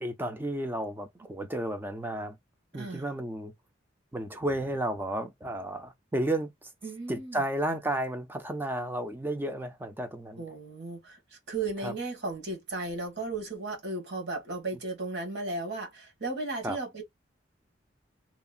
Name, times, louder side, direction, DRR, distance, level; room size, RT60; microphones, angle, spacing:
voice 1, 0.0-2.4 2.7-3.5 4.1-6.7 7.1-10.4 11.8-11.9 16.6-16.8, right 1 dB, 10° right, 0.4 m, -32 dB
voice 2, 2.7-3.1 6.8-7.4 10.4-11.2 11.5-17.0, right 2 dB, 60° right, 1.4 m, -35 dB
2.8 x 2.4 x 2.4 m
head